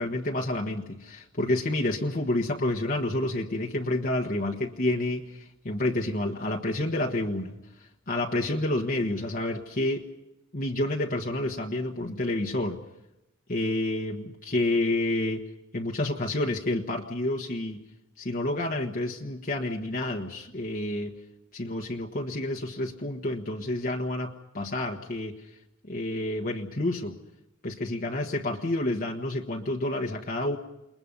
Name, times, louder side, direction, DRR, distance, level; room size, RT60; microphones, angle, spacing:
voice 1, 0.0-10.1 10.5-12.8 13.5-15.4 15.7-17.8 18.2-21.2 21.5-25.4 25.9-27.2 27.6-30.6, left 1 dB, 40° left, 0 dB, 1.4 m, -29 dB
29.0 x 21.5 x 5.4 m, 0.91 s
head